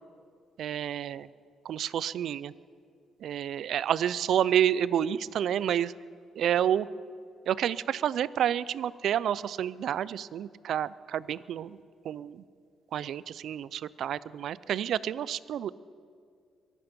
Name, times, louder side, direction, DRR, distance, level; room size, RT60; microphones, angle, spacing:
voice 1, 0.6-1.3 1.6-2.5 3.2-5.9 6.4-6.9 7.4-11.8 12.0-12.4 12.9-15.7, right 10 dB, 70° right, 19 dB, 0.4 m, -29 dB
23.0 x 12.0 x 5.3 m, 2.2 s
cardioid pair, 125°, 0 cm